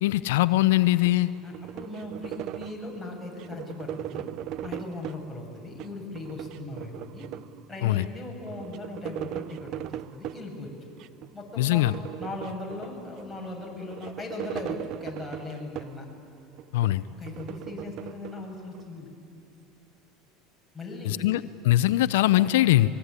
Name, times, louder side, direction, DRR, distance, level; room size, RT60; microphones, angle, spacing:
voice 1, 0.0-1.3 7.8-8.1 11.6-11.9 16.7-17.0 21.1-22.9, left 16 dB, 85° left, 14 dB, 0.6 m, -22 dB
sound 1, 1.0-2.9 3.4-5.3 5.7-7.6 8.0-8.1 8.3-10.4 11.0-11.3 11.6-13.2 13.7-16.1 16.5-18.8, right 13 dB, 60° right, 0.6 m, -39 dB
voice 2, 1.4-4.3 4.6-7.3 7.7-10.7 11.3-11.8 12.2-16.1 17.2-19.1 20.7-21.3, left 2 dB, 5° left, -2 dB, 7.6 m, -38 dB
26.0 x 22.0 x 9.8 m, 2.8 s
supercardioid pair, 105°, 0 cm